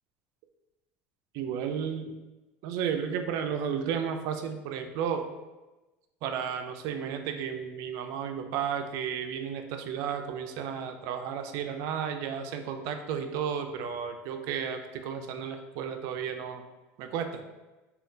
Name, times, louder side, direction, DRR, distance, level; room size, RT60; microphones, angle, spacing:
voice 1, 1.3-2.1 2.6-5.2 6.2-16.6 17.0-17.4, right 7 dB, 65° right, 6 dB, 0.4 m, -33 dB
3.6 x 2.3 x 2.6 m, 1.1 s
supercardioid pair, 110°, 6 cm